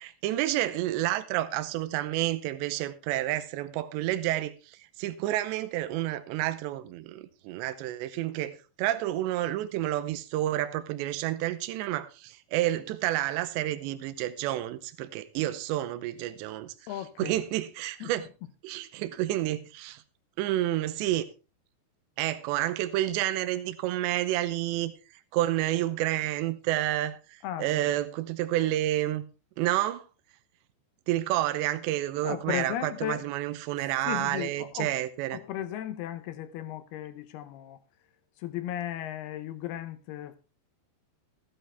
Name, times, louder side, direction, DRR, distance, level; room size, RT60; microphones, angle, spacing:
voice 1, 0.0-18.3 18.6-20.0 20.4-21.2 22.2-24.9 25.3-29.2 29.6-30.0 31.1-35.4, right 14 dB, 85° right, 3.0 m, -30 dB
voice 2, 16.9-17.4 18.0-18.1 27.4-27.9 32.2-33.2 34.1-34.9 35.3-37.8 38.4-40.4, left 12 dB, 75° left, 2.6 m, -35 dB
15.0 x 11.0 x 3.3 m
omnidirectional pair, 5.1 m